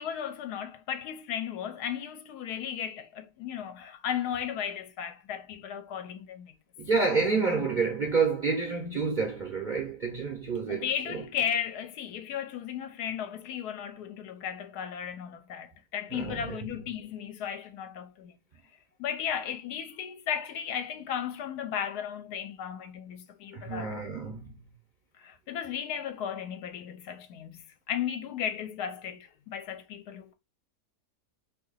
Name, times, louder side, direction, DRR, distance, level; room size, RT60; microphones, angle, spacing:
voice 1, 0.0-6.5 10.7-18.3 19.0-24.0 25.2-30.3, left 8 dB, 75° left, 1.1 m, -35 dB
voice 2, 6.8-11.2 16.1-16.6 23.5-24.6, right 4 dB, 45° right, 0.6 m, -29 dB
2.8 x 2.8 x 3.9 m
omnidirectional pair, 1.8 m